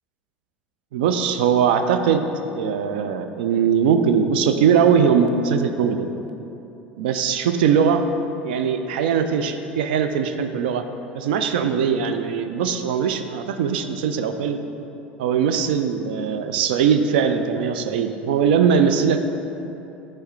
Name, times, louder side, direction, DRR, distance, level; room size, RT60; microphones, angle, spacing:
voice 1, 0.9-2.3 2.6-6.1 7.0-8.0 8.4-10.8 11.1-14.6 15.2-19.2, right 7 dB, 65° right, 8 dB, 0.4 m, -20 dB
9.0 x 3.3 x 4.7 m, 2.9 s
figure-of-eight pair, 70°, 6 cm